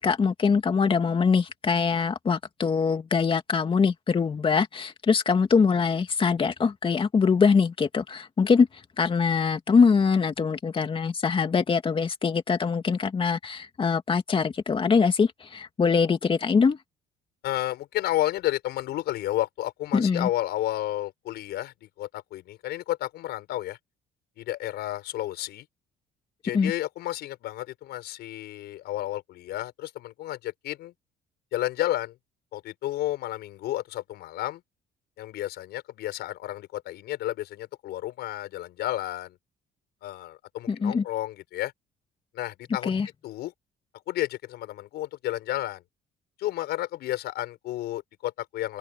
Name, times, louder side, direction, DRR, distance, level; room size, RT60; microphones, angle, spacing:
voice 1, 0.0-8.7 9.0-16.8 19.9-20.3 26.5-26.7 40.7-41.0 42.9-43.1, left 5 dB, 30° left, 2.4 m, -23 dB
voice 2, 17.4-23.8 24.4-25.7 26.4-30.9 31.5-32.2 32.5-34.6 35.2-39.4 40.0-41.7 42.3-42.9 43.2-43.5 44.1-45.8 46.4-48.8, left 14 dB, 75° left, 5.5 m, -31 dB
open air
cardioid pair, 110°, 17 cm